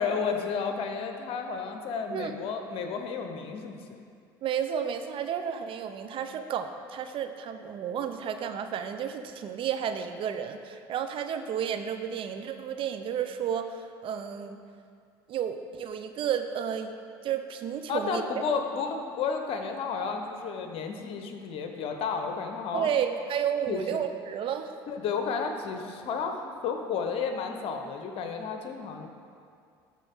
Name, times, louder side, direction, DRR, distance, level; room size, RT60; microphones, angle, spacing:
voice 1, 0.0-3.8 17.9-22.9 23.7-24.0 24.9-29.1, left 5 dB, 60° left, 5 dB, 0.9 m, -32 dB
voice 2, 4.4-14.6 15.3-16.9 17.2-18.3 22.7-24.7, right 8 dB, 50° right, 8 dB, 0.6 m, -32 dB
13.0 x 4.5 x 3.7 m, 2.3 s
hypercardioid pair, 75°, 11 cm